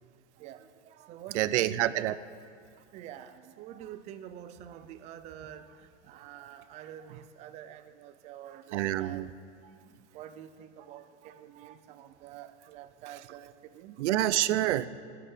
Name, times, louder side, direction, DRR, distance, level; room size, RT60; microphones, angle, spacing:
voice 1, 0.4-2.1 2.9-9.3 10.1-14.0, right 10 dB, 20° right, 12 dB, 0.4 m, -47 dB
voice 2, 1.3-2.2 8.7-9.3 14.0-14.9, right 14 dB, 80° right, 16 dB, 0.7 m, -27 dB
12.5 x 10.5 x 8.5 m, 2.3 s
supercardioid pair, 160°, 35 cm